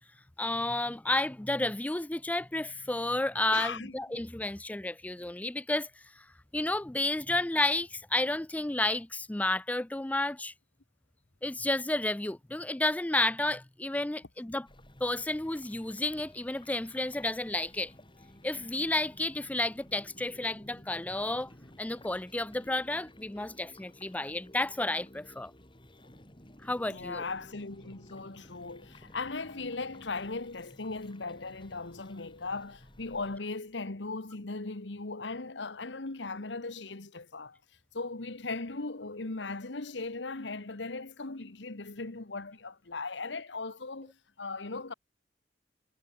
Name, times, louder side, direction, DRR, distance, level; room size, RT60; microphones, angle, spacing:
voice 1, 0.4-5.9 6.2-6.3 6.5-10.5 11.4-14.7 15.0-17.9 18.4-21.5 21.8-25.5 26.6-27.2, left 2 dB, 10° left, 0.4 m, -31 dB
voice 2, 3.5-4.2 26.8-37.6 37.9-44.9, left 3 dB, 75° left, 1.4 m, -38 dB
sound 1, 14.7-33.4, left 1 dB, 25° left, 5.9 m, -54 dB
head